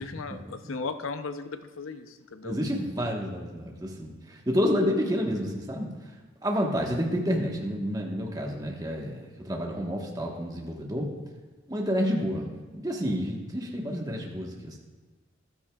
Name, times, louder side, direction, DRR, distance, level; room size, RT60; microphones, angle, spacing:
voice 1, 0.0-2.6, left 4 dB, 90° left, 9 dB, 0.7 m, -36 dB
voice 2, 2.4-5.9 6.4-11.1 11.7-14.8, equal, 20° right, -1 dB, 1.3 m, -29 dB
13.5 x 12.5 x 2.4 m, 1.3 s
head